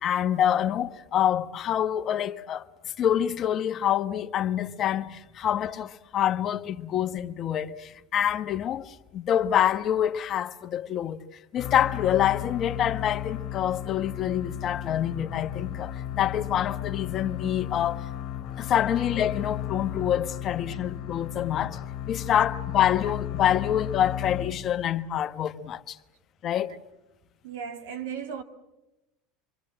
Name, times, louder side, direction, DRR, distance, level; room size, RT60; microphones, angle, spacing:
voice 1, 0.0-2.7 3.0-11.2 11.5-18.0 18.6-21.8 22.1-26.0 26.4-26.8, left 10 dB, 45° left, 1.2 m, -26 dB
sound 1, 11.6-25.0, left 11 dB, 60° left, 1.9 m, -34 dB
voice 2, 27.4-28.4, right 7 dB, 80° right, 2.2 m, -35 dB
26.5 x 23.5 x 7.7 m
hypercardioid pair, 95°, 0 cm